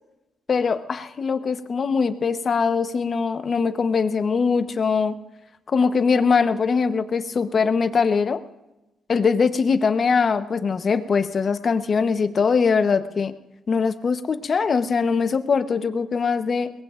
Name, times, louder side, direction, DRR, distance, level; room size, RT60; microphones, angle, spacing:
voice 1, 0.5-5.2 5.7-8.4 9.1-13.3 13.7-16.7, left 5 dB, 50° left, 9 dB, 1.0 m, -22 dB
22.0 x 18.5 x 2.5 m, 1.0 s
cardioid pair, 70°, 0 cm